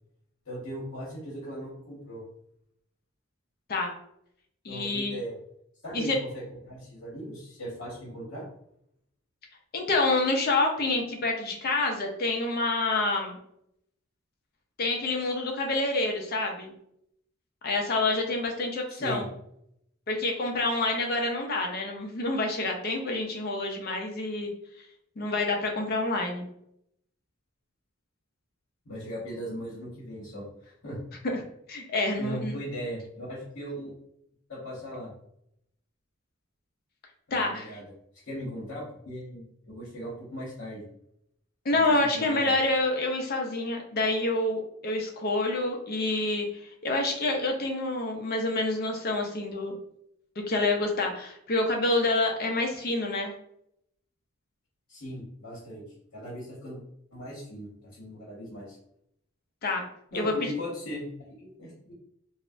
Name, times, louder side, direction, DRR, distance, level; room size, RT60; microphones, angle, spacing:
voice 1, 0.4-2.2 4.7-5.3 5.8-8.5 18.9-19.2 28.8-31.0 32.2-33.9 34.5-35.1 37.3-37.9 38.3-40.8 41.7-42.5 54.9-55.8 56.1-56.8 57.1-58.8 60.1-61.9, equal, 65° left, -5 dB, 0.9 m, -38 dB
voice 2, 4.6-5.2 5.9-6.2 9.7-13.4 14.8-16.7 17.6-19.2 20.1-24.5 25.2-26.5 31.2-31.3 31.7-32.6 37.3-37.8 41.6-49.8 50.5-53.3 59.6-59.8 60.1-60.5, left 2 dB, 50° left, 2 dB, 0.5 m, -27 dB
3.2 x 2.0 x 2.5 m, 0.75 s
head